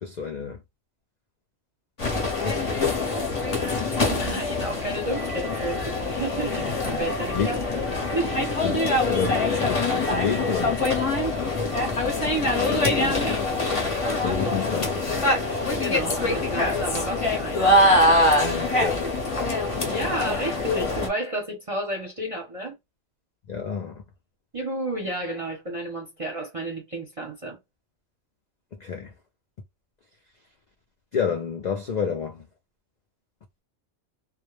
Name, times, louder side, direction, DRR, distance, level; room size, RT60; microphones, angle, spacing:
voice 1, 0.0-0.6 2.4-3.0 7.3-7.5 8.6-8.8 9.0-10.8 14.2-15.1 18.4-19.1 23.5-24.0 28.8-29.1 31.1-32.4, left 6 dB, 75° left, 0.4 m, -29 dB
sound 1, 2.0-21.1, left 2 dB, 35° left, 0.6 m, -24 dB
voice 2, 3.9-5.8 6.1-7.9 8.2-8.5 12.5-13.5 15.8-17.8 19.8-22.7 24.5-27.6, right 1 dB, 35° right, 0.7 m, -31 dB
2.2 x 2.1 x 3.0 m
omnidirectional pair, 1.3 m